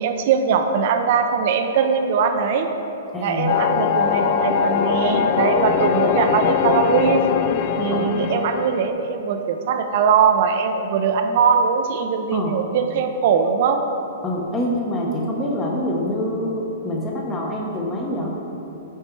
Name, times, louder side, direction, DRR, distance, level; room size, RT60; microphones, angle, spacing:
voice 1, 0.0-2.7 3.2-7.2 7.8-13.8, right 6 dB, 55° right, 6 dB, 0.5 m, -21 dB
voice 2, 3.1-3.6 7.9-8.2 12.3-12.7 14.2-18.3, left 1 dB, 15° left, -2 dB, 1.0 m, -26 dB
sound 1, 3.5-8.9, left 7 dB, 45° left, 0.3 m, -21 dB
8.1 x 4.3 x 4.5 m, 2.9 s
hypercardioid pair, 130°, 0 cm